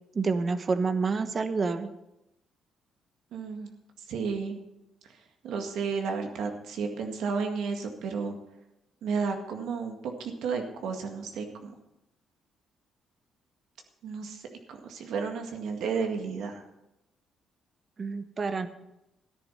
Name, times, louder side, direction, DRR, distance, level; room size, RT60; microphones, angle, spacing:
voice 1, 0.1-1.9 18.0-18.7, right 4 dB, 40° right, 10 dB, 1.1 m, -28 dB
voice 2, 3.3-3.7 4.1-4.6 5.4-8.3 9.0-11.7 14.0-16.6, right 5 dB, 80° right, 4 dB, 1.9 m, -32 dB
13.5 x 10.5 x 5.6 m, 0.91 s
cardioid pair, 90°, 0 cm